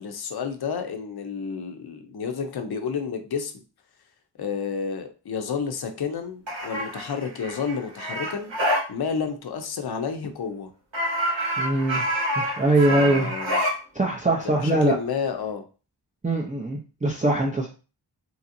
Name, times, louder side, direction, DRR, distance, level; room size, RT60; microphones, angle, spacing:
voice 1, 0.0-3.5 4.4-8.5 8.9-10.7 12.9-13.6 14.4-15.6, left 6 dB, 60° left, 6 dB, 0.6 m, -30 dB
sound 1, 6.5-8.8 10.9-13.7, equal, 80° right, 1.3 m, -27 dB
voice 2, 11.6-12.0 12.4-13.3 13.9-15.0 16.2-17.7, right 2 dB, 15° right, -2 dB, 0.5 m, -22 dB
2.9 x 2.8 x 2.5 m, 0.35 s
wide cardioid pair, 55°, 44 cm